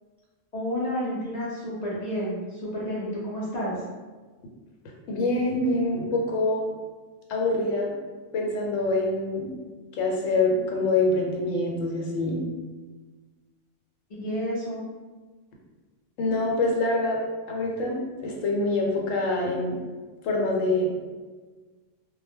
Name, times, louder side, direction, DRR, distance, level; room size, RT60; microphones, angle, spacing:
voice 1, 0.5-3.8 14.1-14.9, equal, 55° left, -7 dB, 0.4 m, -30 dB
voice 2, 5.1-6.7 7.3-8.0 8.3-9.5 9.9-12.4 16.2-17.2 17.5-19.8 20.2-20.9, left 2 dB, 80° left, -1 dB, 1.0 m, -25 dB
2.2 x 2.0 x 3.3 m, 1.4 s
omnidirectional pair, 1.3 m